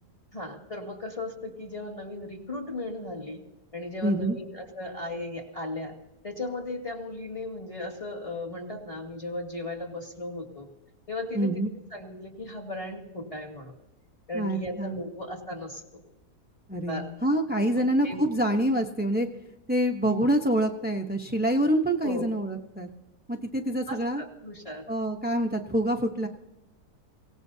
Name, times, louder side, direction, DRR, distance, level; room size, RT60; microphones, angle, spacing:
voice 1, 0.3-3.4 3.7-5.9 6.2-10.7 11.1-11.6 11.9-13.7 14.3-15.8 16.9-17.1 17.8-18.2 22.0-22.2 23.9-24.8, left 2 dB, 20° left, -1 dB, 2.3 m, -36 dB
voice 2, 4.0-4.4 11.3-11.7 14.3-15.0 16.7-19.3 19.7-22.9 23.3-24.2 24.9-26.3, right 1 dB, 10° right, 3 dB, 0.4 m, -26 dB
24.5 x 17.0 x 2.7 m, 0.91 s
omnidirectional pair, 1.6 m